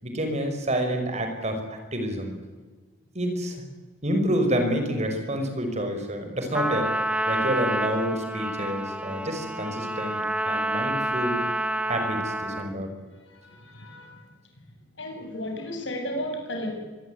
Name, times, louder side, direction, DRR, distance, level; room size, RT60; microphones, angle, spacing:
voice 1, 0.0-2.3 3.1-3.6 4.0-11.4 11.9-12.9, equal, 35° right, 6 dB, 5.3 m, -28 dB
Trumpet, 6.5-12.8, right 1 dB, 5° right, 1.3 m, -28 dB
voice 2, 13.3-14.3 15.0-16.8, left 1 dB, 75° left, 3 dB, 7.7 m, -34 dB
24.5 x 21.0 x 9.5 m, 1.3 s
head